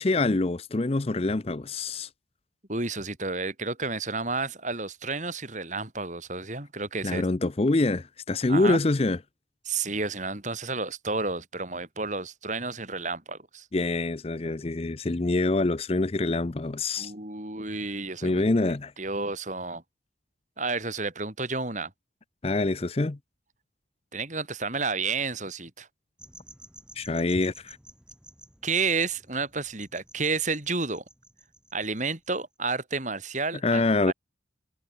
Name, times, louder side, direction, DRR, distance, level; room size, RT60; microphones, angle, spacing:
voice 1, 0.0-2.1 7.0-9.2 13.7-17.1 18.2-18.9 22.4-23.2 27.0-27.8 33.6-34.1, left 2 dB, 30° left, 0.5 m, -25 dB
voice 2, 2.7-7.2 8.5-8.8 9.7-13.7 17.0-18.4 19.0-19.8 20.6-21.9 24.1-25.9 28.6-31.0 31.7-33.8 34.1-34.2, right 4 dB, 40° right, 4.0 m, -31 dB
sound 1, 26.2-32.4, right 1 dB, 5° right, 4.6 m, -52 dB
head